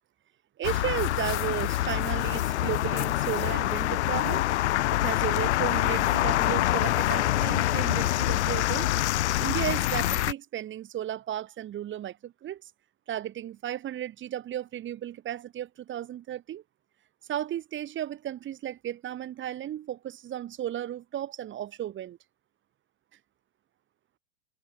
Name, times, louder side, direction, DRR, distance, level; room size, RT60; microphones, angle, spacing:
sound 1, 0.6-10.3, left 15 dB, 70° left, 3.3 m, -26 dB
voice 1, 0.6-4.5 4.9-8.9 9.4-12.7 13.1-16.6 17.3-22.2, right 11 dB, 35° right, 3.2 m, -34 dB
hypercardioid pair, 100°, 35 cm